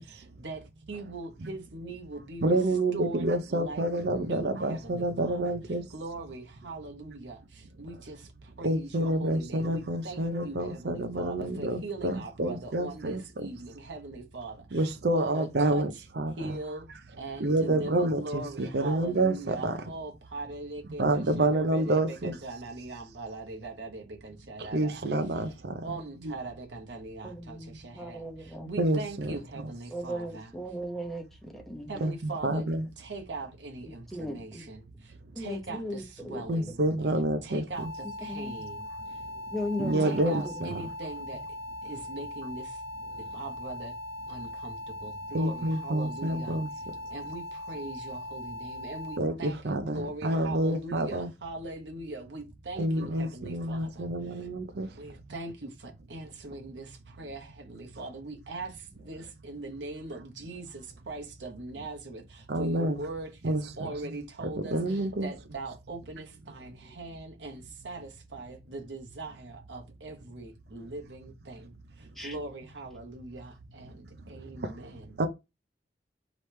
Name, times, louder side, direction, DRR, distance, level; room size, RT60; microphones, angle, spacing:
voice 1, 0.0-2.6 2.9-5.5 5.9-14.9 15.1-16.1 16.4-16.9 17.2-25.1 25.3-25.4 25.8-30.5 31.9-32.7 33.0-36.8 37.4-39.2 40.0-41.5 41.8-42.8 43.2-44.0 44.3-46.6 47.1-54.5 55.0-75.1, right 2 dB, 80° right, 1.0 m, -41 dB
voice 2, 2.4-5.9 8.6-13.5 14.7-15.9 16.2-16.6 17.4-19.8 21.0-22.3 24.6-25.8 26.2-26.3 28.8-29.4 32.0-32.9 36.5-37.9 39.8-40.7 45.3-46.7 49.2-51.3 52.8-54.9 62.5-63.0 63.4-63.9 64.7-65.3 74.2-74.7 75.2-75.3, right 1 dB, 60° right, 0.6 m, -28 dB
voice 3, 27.2-28.7 29.9-32.0 32.4-32.6 34.1-34.6 35.3-36.6 38.3-38.5 39.5-40.1 40.4-40.5 72.2-72.3, equal, ahead, 0.8 m, -37 dB
sound 1, 37.7-49.2, left 1 dB, 80° left, 0.5 m, -40 dB
5.0 x 3.1 x 3.2 m
head